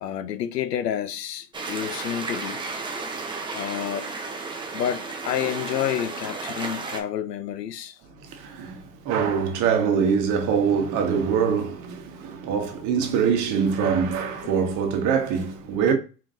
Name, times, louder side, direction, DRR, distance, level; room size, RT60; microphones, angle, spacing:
voice 1, 0.0-2.6 3.5-4.2 4.7-8.0 14.4-14.5, left 10 dB, 80° left, 0.7 m, -29 dB
sound 1, 1.5-7.0, right 3 dB, 10° right, 0.6 m, -33 dB
voice 2, 8.2-15.9, right 6 dB, 40° right, 1.3 m, -24 dB
4.3 x 3.7 x 2.6 m
hypercardioid pair, 100°, 48 cm